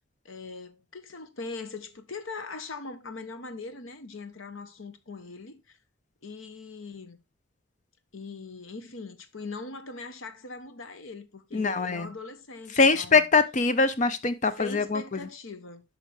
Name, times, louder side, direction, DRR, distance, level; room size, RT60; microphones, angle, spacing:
voice 1, 0.2-5.8 6.2-7.2 8.1-13.2 14.6-15.8, left 3 dB, 75° left, 1.0 m, -41 dB
voice 2, 11.5-12.1 12.8-15.2, left 4 dB, 35° left, 0.5 m, -23 dB
8.9 x 5.8 x 3.3 m
head